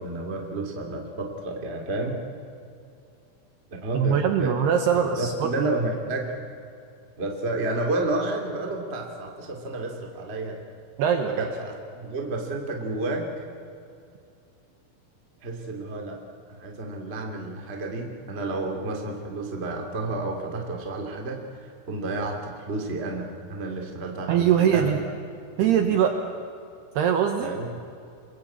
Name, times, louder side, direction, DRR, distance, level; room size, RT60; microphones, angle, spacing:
voice 1, 0.0-2.2 3.8-4.5 4.9-6.4 7.2-10.6 11.2-13.3 15.4-16.2 16.6-25.1 25.6-25.8 27.4-27.7, right 2 dB, 20° right, 2 dB, 1.5 m, -31 dB
voice 2, 3.9-5.7 11.0-11.5 24.3-25.0 25.6-26.2 27.0-27.5, right 8 dB, 70° right, 5 dB, 2.7 m, -22 dB
27.0 x 21.5 x 8.7 m, 2.5 s
omnidirectional pair, 5.9 m